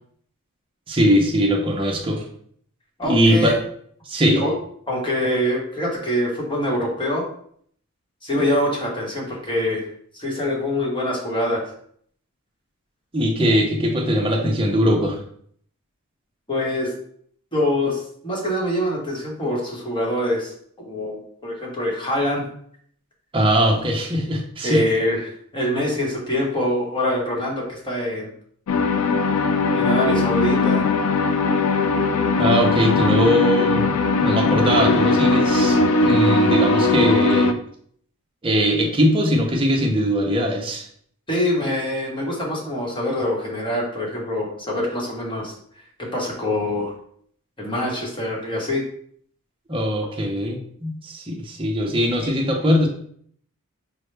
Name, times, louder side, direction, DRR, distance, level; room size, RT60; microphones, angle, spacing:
voice 1, 0.9-2.2 3.0-3.6 4.1-4.4 13.1-15.2 23.3-24.8 32.4-33.9 34.2-37.5 38.4-40.8 49.7-52.9, equal, 25° right, 1 dB, 0.7 m, -20 dB
voice 2, 3.0-3.5 4.3-4.5 4.9-7.2 8.2-9.9 10.1-11.7 16.5-16.9 17.5-20.5 20.8-22.5 24.6-25.2 25.5-28.3 29.7-30.9 41.3-45.5 46.1-46.9 47.6-48.8 50.0-50.2 52.2-52.3, left 1 dB, 20° left, -2 dB, 1.0 m, -24 dB
sound 1, 28.7-37.5, left 3 dB, 70° left, 0.4 m, -19 dB
5.4 x 2.1 x 3.2 m, 0.62 s
head